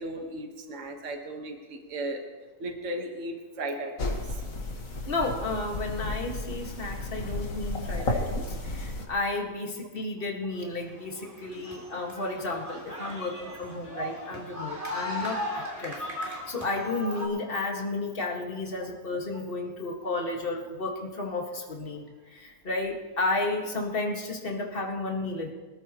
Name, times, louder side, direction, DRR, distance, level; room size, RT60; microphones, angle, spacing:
voice 1, 0.0-2.2 2.6-4.4 11.6-11.9, right 1 dB, 50° right, 3 dB, 1.8 m, -36 dB
sound 1, 4.0-9.1, left 2 dB, 55° left, 2.0 m, -33 dB
voice 2, 5.1-25.5, left 2 dB, 35° left, 1 dB, 1.9 m, -32 dB
sound 2, 10.6-17.3, left 1 dB, 10° right, 3.0 m, -37 dB
24.5 x 14.0 x 3.0 m, 1.3 s
omnidirectional pair, 1.7 m